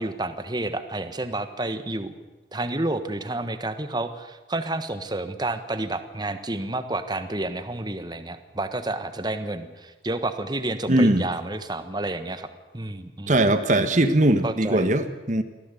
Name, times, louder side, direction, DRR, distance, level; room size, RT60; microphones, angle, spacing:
voice 1, 0.0-2.1 2.5-12.5 12.7-13.5 14.4-14.9, right 2 dB, 25° right, 10 dB, 1.4 m, -30 dB
voice 2, 10.9-11.3 13.3-15.4, right 1 dB, 45° right, 9 dB, 1.4 m, -20 dB
24.0 x 16.0 x 8.4 m, 1.2 s
head